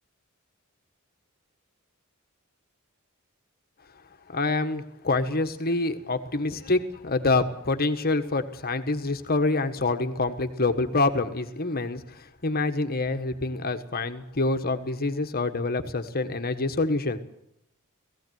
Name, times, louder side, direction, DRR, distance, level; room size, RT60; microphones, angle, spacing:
voice 1, 4.3-17.2, left 3 dB, 45° left, 8 dB, 1.6 m, -26 dB
18.5 x 16.0 x 9.4 m, 0.79 s
head